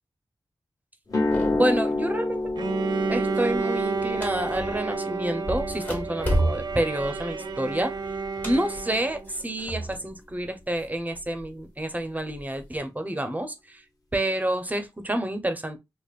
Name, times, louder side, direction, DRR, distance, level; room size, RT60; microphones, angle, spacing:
sound 1, 1.1-9.1, left 2 dB, 45° left, 1.2 m, -31 dB
sound 2, 1.3-1.9 2.3-2.7 3.0-4.9 5.4-10.1 10.4-11.4 12.0-12.8, equal, 20° left, 0.9 m, -32 dB
voice 1, 1.5-2.4 3.1-7.9 8.4-13.8 14.1-15.8, right 1 dB, 20° right, 0.7 m, -28 dB
Bowed string instrument, 2.6-9.3, right 4 dB, 60° right, 0.4 m, -31 dB
5.1 x 2.0 x 2.4 m
wide cardioid pair, 75°, 8 cm